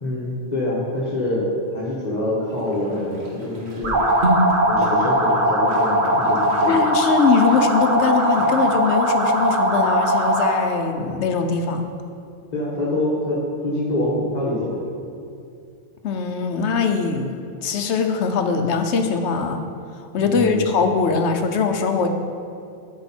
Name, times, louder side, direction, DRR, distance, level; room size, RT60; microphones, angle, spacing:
voice 1, 0.0-4.0 4.7-6.8 12.5-14.8 20.2-20.7, left 1 dB, 35° left, -7 dB, 1.4 m, -25 dB
sound 1, 2.5-10.4, right 1 dB, 65° right, 1.5 m, -32 dB
sound 2, 3.8-10.6, equal, 45° right, 1.1 m, -19 dB
voice 2, 6.7-11.9 16.0-19.6 20.1-22.1, left 5 dB, 75° left, 6 dB, 1.0 m, -21 dB
12.5 x 4.8 x 4.4 m, 2.4 s
omnidirectional pair, 1.2 m